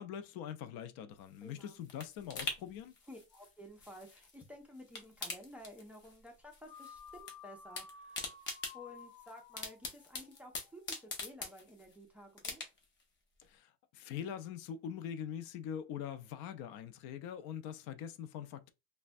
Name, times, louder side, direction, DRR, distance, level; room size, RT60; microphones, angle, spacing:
voice 1, 0.0-2.9 13.5-18.7, left 9 dB, 80° left, 0.5 m, -43 dB
sound 1, 1.2-4.5 4.8-6.3 6.5-7.3 7.6-11.9 12.4-13.0 13.4-13.5, left 3 dB, 35° left, 0.7 m, -44 dB
voice 2, 1.4-1.8 3.1-8.4 8.7-12.6, equal, 5° right, 0.3 m, -53 dB
sound 2, 6.6-11.2, left 5 dB, 65° left, 0.9 m, -55 dB
3.3 x 2.2 x 2.5 m
cardioid pair, 155°, 35 cm